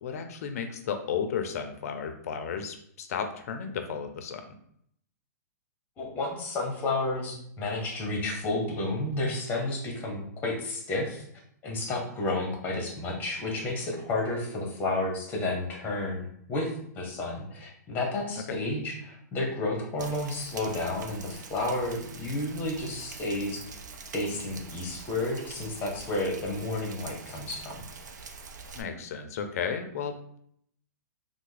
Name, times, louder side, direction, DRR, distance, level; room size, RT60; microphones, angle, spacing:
voice 1, 0.0-4.5 18.5-18.6 28.8-30.4, left 7 dB, 60° left, 7 dB, 0.4 m, -33 dB
voice 2, 6.0-11.2 11.6-23.6 24.1-27.8, left 2 dB, 20° left, 0 dB, 0.8 m, -31 dB
Rain, 20.0-28.8, right 4 dB, 85° right, 0.4 m, -45 dB
3.3 x 2.0 x 3.2 m, 0.67 s
hypercardioid pair, 150°, 9 cm